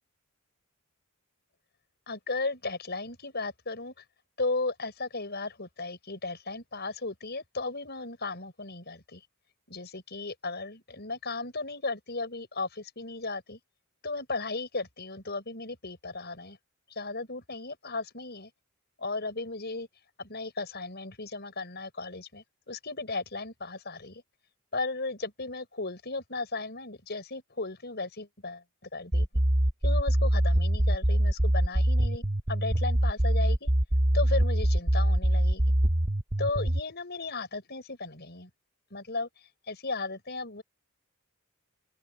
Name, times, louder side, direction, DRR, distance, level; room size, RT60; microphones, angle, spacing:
voice 1, 2.1-4.0 4.4-9.2 9.7-13.6 14.0-16.6 16.9-18.5 19.0-19.9 20.2-24.2 24.7-28.6 28.9-29.3 29.8-33.7 34.1-35.7 36.4-38.5 38.9-39.3 39.7-40.6, left 3 dB, 50° left, 6.5 m, -35 dB
sound 1, 29.1-36.8, right 1 dB, 25° right, 1.1 m, -24 dB
open air
head